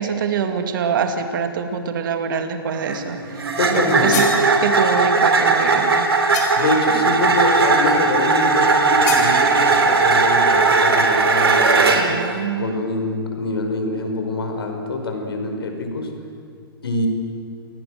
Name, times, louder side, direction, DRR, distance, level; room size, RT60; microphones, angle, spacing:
voice 1, 0.0-4.3 4.6-6.1 12.0-12.8, right 6 dB, 60° right, 6 dB, 2.5 m, -25 dB
sound 1, 2.8-12.2, right 4 dB, 90° right, 3.5 m, -17 dB
voice 2, 3.6-4.2 6.6-16.1 16.8-17.1, left 2 dB, 80° left, 4 dB, 5.4 m, -25 dB
sound 2, 3.8-4.4 6.3-6.8 9.1-9.3, left 6 dB, 50° left, 6.9 m, -28 dB
28.5 x 19.0 x 7.9 m, 2.3 s
hypercardioid pair, 140°, 12 cm